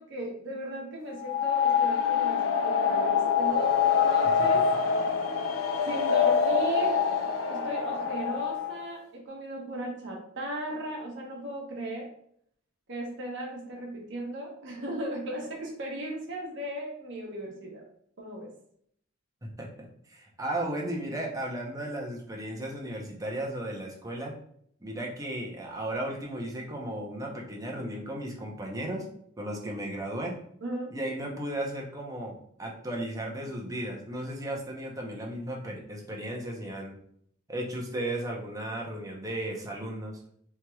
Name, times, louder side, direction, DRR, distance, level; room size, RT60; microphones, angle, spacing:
voice 1, 0.0-4.7 5.9-7.2 7.5-12.1 12.9-17.9 18.2-18.5 30.6-30.9, right 1 dB, 60° right, -1 dB, 1.1 m, -37 dB
sound 1, 1.2-8.8, left 6 dB, 80° left, 0.5 m, -25 dB
voice 2, 20.1-24.3 24.8-29.1 29.4-30.3 30.9-36.9 37.5-40.2, right 1 dB, 15° right, -1 dB, 0.8 m, -35 dB
4.5 x 3.0 x 2.3 m, 0.67 s
head